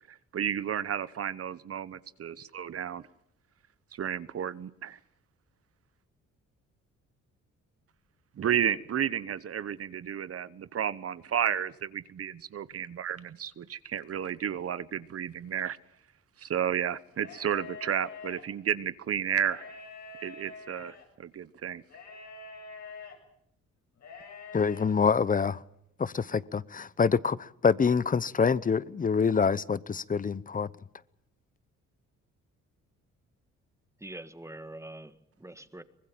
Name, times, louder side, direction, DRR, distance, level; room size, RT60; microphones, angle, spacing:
voice 1, 0.1-3.0 3.9-5.0 8.4-15.8 16.4-19.6 20.2-21.8, right 9 dB, 50° right, 1.0 m, -32 dB
sound 1, 17.1-18.4 19.4-21.0 21.9-23.2 24.0-24.9, left 4 dB, 65° left, 7.1 m, -45 dB
voice 2, 24.5-25.6 26.0-30.7, left 5 dB, 25° left, 0.8 m, -26 dB
voice 3, 34.0-35.8, right 1 dB, 10° right, 1.6 m, -44 dB
24.0 x 20.5 x 7.5 m
cardioid pair, 90°, 30 cm